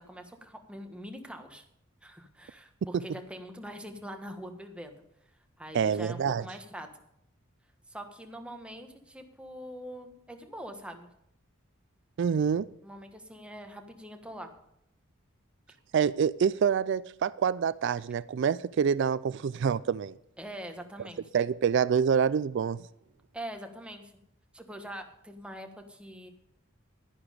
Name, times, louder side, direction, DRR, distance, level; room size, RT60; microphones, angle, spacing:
voice 1, 0.1-1.6 2.0-5.0 5.6-6.9 7.9-11.1 12.8-14.5 20.4-21.2 23.3-24.1 24.5-26.3, equal, 5° right, 1.3 m, -43 dB
voice 2, 5.7-6.5 12.2-12.7 15.9-20.2 21.3-22.9, right 7 dB, 60° right, 0.3 m, -26 dB
11.5 x 11.0 x 5.1 m
head